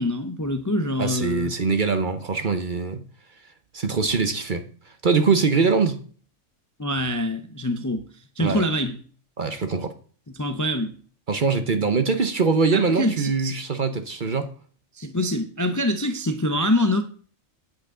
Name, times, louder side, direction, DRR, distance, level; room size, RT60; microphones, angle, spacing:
voice 1, 0.0-1.5 6.8-8.0 8.4-9.0 10.3-10.9 12.7-13.5 15.0-17.0, left 1 dB, 20° left, 0.5 m, -25 dB
voice 2, 1.0-3.0 3.7-4.6 5.0-6.0 8.4-8.6 9.4-9.9 11.3-14.5, right 4 dB, 45° right, 0.9 m, -22 dB
9.0 x 7.9 x 3.8 m
omnidirectional pair, 1.4 m